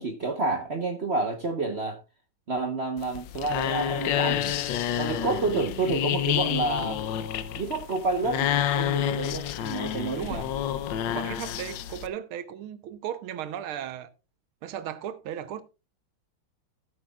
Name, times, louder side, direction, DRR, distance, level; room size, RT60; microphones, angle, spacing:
voice 1, 0.0-2.0 2.5-4.6 5.0-7.0 7.6-10.5, right 3 dB, 40° right, 1.0 m, -29 dB
sound 1, 3.0-12.1, left 11 dB, 70° left, 1.3 m, -29 dB
voice 2, 11.1-14.1 14.6-15.6, right 10 dB, 80° right, 1.7 m, -36 dB
15.0 x 8.6 x 2.3 m
omnidirectional pair, 2.3 m